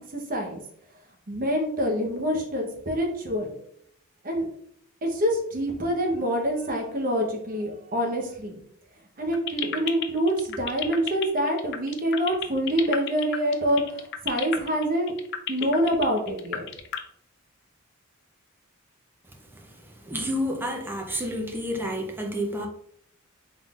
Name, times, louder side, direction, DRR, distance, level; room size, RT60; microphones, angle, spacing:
voice 1, 0.1-0.6 1.3-3.5 4.2-4.5 5.0-8.6 9.2-15.1 15.5-16.7, equal, 40° right, 1 dB, 0.9 m, -26 dB
sound 1, 9.3-17.0, left 10 dB, 55° left, 0.4 m, -31 dB
voice 2, 20.1-22.7, equal, 10° right, 2 dB, 0.6 m, -29 dB
3.8 x 3.7 x 2.4 m, 0.68 s
head